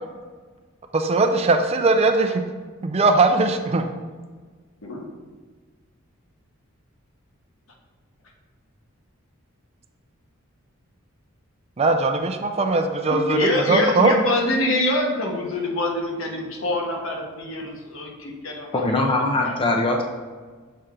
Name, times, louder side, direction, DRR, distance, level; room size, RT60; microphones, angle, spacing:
voice 1, 0.9-2.4 2.8-3.9 11.8-14.1, right 3 dB, 30° right, 6 dB, 0.4 m, -20 dB
voice 2, 4.8-5.1 13.1-19.1 19.4-19.5, left 2 dB, 65° left, 0 dB, 1.1 m, -25 dB
voice 3, 18.7-20.0, left 2 dB, 25° left, 2 dB, 0.5 m, -21 dB
6.6 x 4.4 x 3.7 m, 1.4 s
head